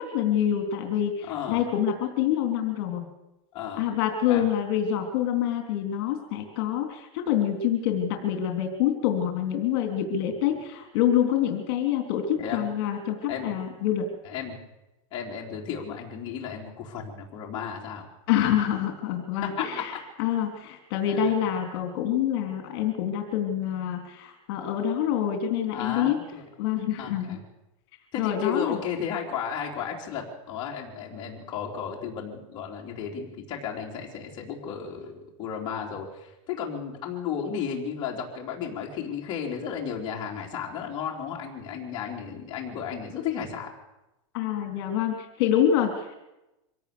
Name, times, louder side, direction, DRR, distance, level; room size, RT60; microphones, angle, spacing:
voice 1, 0.0-3.1 3.8-14.1 18.3-26.2 26.6-27.4 28.2-28.8 44.3-46.2, left 10 dB, 50° left, 4 dB, 3.5 m, -26 dB
voice 2, 1.3-1.6 3.5-3.8 4.3-4.5 12.4-12.6 13.3-13.5 14.2-14.6 15.1-18.1 19.4-20.0 21.0-21.3 25.7-26.4 27.0-27.4 28.1-35.1 35.4-43.7, left 7 dB, 30° left, -2 dB, 3.7 m, -34 dB
24.5 x 17.0 x 7.0 m, 0.94 s
supercardioid pair, 170°, 16 cm